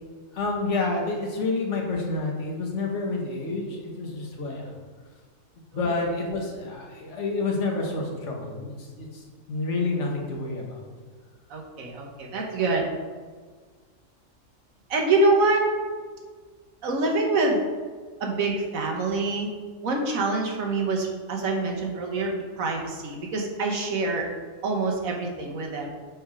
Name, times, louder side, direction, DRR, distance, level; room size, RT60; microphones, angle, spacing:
voice 1, 0.3-4.7 5.7-10.9, left 3 dB, 60° left, -1 dB, 1.3 m, -29 dB
voice 2, 11.5-12.9 14.9-15.7 16.8-17.6 18.2-19.5 19.8-24.3 24.6-25.9, right 2 dB, 85° right, 0 dB, 1.4 m, -25 dB
6.2 x 3.4 x 4.9 m, 1.5 s
omnidirectional pair, 1.4 m